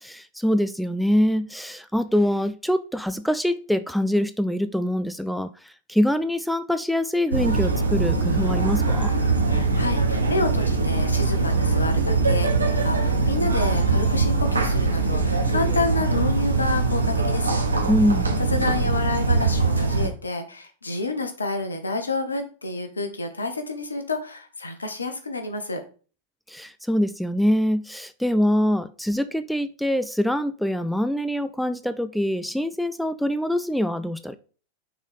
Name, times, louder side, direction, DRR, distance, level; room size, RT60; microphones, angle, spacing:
voice 1, 0.0-9.1 17.9-18.3 26.5-34.3, equal, ahead, 11 dB, 0.4 m, -24 dB
sound 1, 7.3-20.1, right 3 dB, 80° right, 1.0 m, -22 dB
voice 2, 9.5-17.6 18.5-25.8, left 3 dB, 75° left, 7 dB, 1.1 m, -29 dB
6.1 x 4.1 x 5.0 m, 0.38 s
figure-of-eight pair, 90°, 0 cm